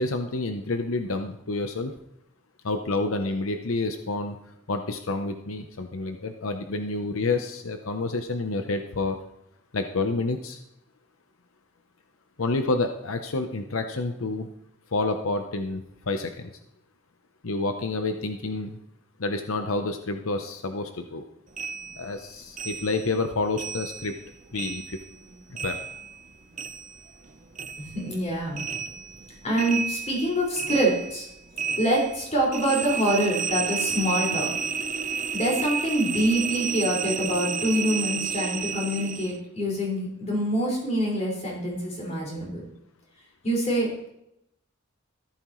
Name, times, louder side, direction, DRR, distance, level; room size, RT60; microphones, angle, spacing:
voice 1, 0.0-1.9 2.6-4.4 4.7-9.2 9.7-10.6 12.4-14.5 14.9-16.5 17.4-18.8 19.2-21.2 22.0-24.1 24.5-25.0 25.6-25.8, left 3 dB, 90° left, 6 dB, 0.9 m, -29 dB
sound 1, 21.6-24.3 24.5-27.3 27.6-39.4, right 6 dB, 40° right, 0.8 m, -32 dB
voice 2, 27.8-28.6 29.4-31.3 31.8-34.5 35.3-42.6 43.4-43.9, right 1 dB, 35° left, -4 dB, 5.3 m, -25 dB
14.5 x 13.0 x 3.2 m, 0.81 s
head